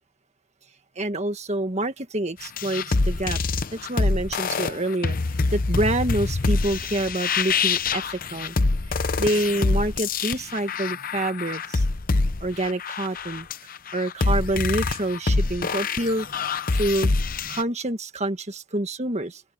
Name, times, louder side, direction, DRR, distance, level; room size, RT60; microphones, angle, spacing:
voice 1, 1.0-3.4 3.7-5.2 5.5-8.6 9.2-11.9 12.4-13.5 13.9-16.3 16.7-17.1 17.5-19.4, right 1 dB, 30° right, 1.7 m, -27 dB
sound 1, 2.4-17.6, left 3 dB, 40° left, 0.7 m, -25 dB
open air
head